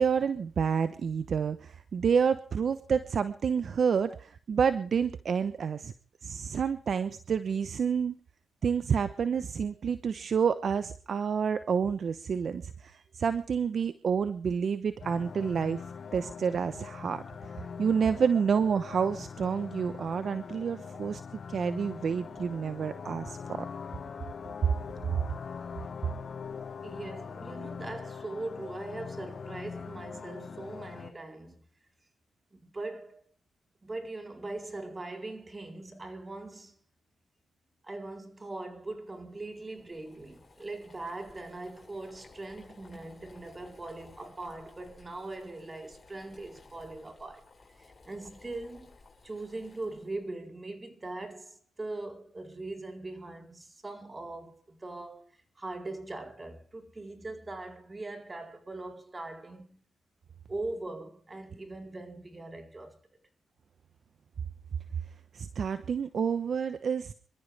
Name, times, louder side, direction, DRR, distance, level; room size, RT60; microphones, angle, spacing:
voice 1, 0.0-5.9 6.2-8.2 8.6-15.8 16.1-17.2 17.8-21.2 21.5-23.7 24.6-24.7 65.3-67.1, right 6 dB, 60° right, 1.0 m, -29 dB
sound 1, 15.0-31.1, left 6 dB, 50° left, 1.2 m, -42 dB
voice 2, 26.8-31.6 32.5-33.2 33.8-36.8 37.8-47.5 47.8-49.0 49.2-59.8 60.5-63.0, right 2 dB, 25° right, 4.3 m, -41 dB
Boiling, 39.0-50.3, left 3 dB, 35° left, 7.7 m, -57 dB
26.5 x 14.0 x 3.5 m
cardioid pair, 65°, 0 cm